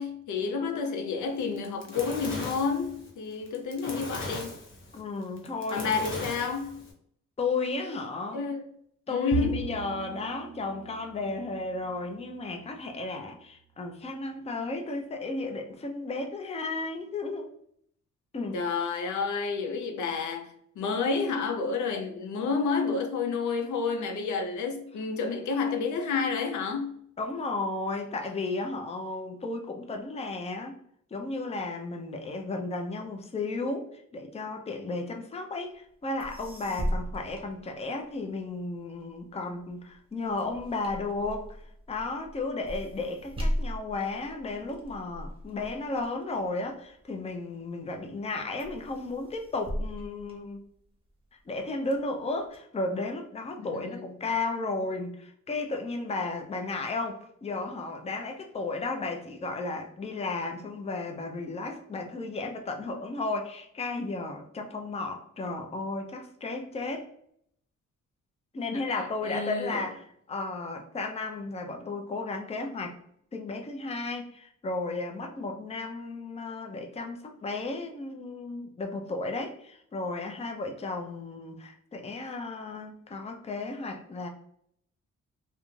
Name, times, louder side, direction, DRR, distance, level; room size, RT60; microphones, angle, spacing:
voice 1, 0.0-4.6 5.7-6.8 8.3-8.6 9.1-9.7 18.5-26.9 53.6-54.1 68.7-69.8, left 5 dB, 75° left, 0.5 m, -30 dB
Fire, 1.4-6.9, left 2 dB, 40° left, 0.8 m, -38 dB
voice 2, 4.9-6.0 7.4-8.4 9.1-17.5 18.3-18.6 27.2-30.7 31.1-41.5 41.9-50.6 51.5-67.1 68.5-73.0 73.3-84.3, left 3 dB, 20° left, 0.4 m, -34 dB
Bowed string instrument, 9.3-12.8, right 7 dB, 55° right, 0.4 m, -38 dB
sound 1, 35.9-36.0 36.2-38.3 38.8-47.4 47.9-48.3 48.6-51.1 51.6-52.6, equal, 20° right, 0.8 m, -37 dB
2.4 x 2.2 x 3.0 m
cardioid pair, 80°, 30 cm